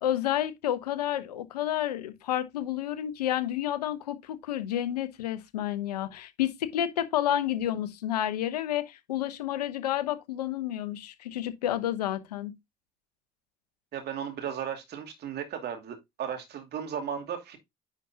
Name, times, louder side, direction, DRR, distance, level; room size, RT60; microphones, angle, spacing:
voice 1, 0.0-12.5, left 11 dB, 90° left, 0.8 m, -30 dB
voice 2, 13.9-17.6, right 8 dB, 55° right, 2.5 m, -35 dB
10.0 x 5.0 x 2.7 m
hypercardioid pair, 60°, 20 cm